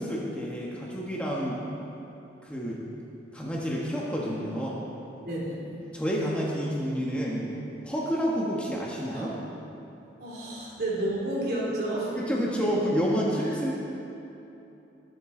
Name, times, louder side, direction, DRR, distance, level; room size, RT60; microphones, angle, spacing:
voice 1, 0.0-1.6 2.4-2.8 3.3-4.8 5.9-7.5 7.7-9.3 12.2-13.7, equal, 5° left, -5 dB, 1.3 m, -29 dB
voice 2, 5.2-5.6 9.1-9.4 10.2-12.2 12.6-12.7 13.4-13.5, right 1 dB, 55° right, -5 dB, 3.1 m, -31 dB
20.5 x 7.7 x 3.8 m, 2.9 s
head